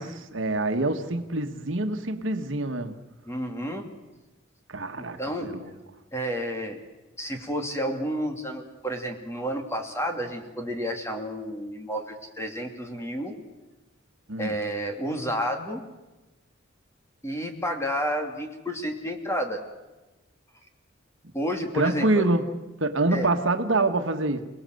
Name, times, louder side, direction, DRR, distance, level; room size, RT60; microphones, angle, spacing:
voice 1, 0.0-2.9 4.7-5.7 14.3-14.5 21.7-24.4, right 2 dB, 65° right, 6 dB, 1.6 m, -26 dB
voice 2, 3.3-3.9 5.0-5.5 6.1-6.8 7.2-13.3 14.4-15.8 17.2-19.6 21.3-22.3 23.1-23.3, equal, 15° left, 3 dB, 2.6 m, -30 dB
28.5 x 19.0 x 7.8 m, 1.1 s
head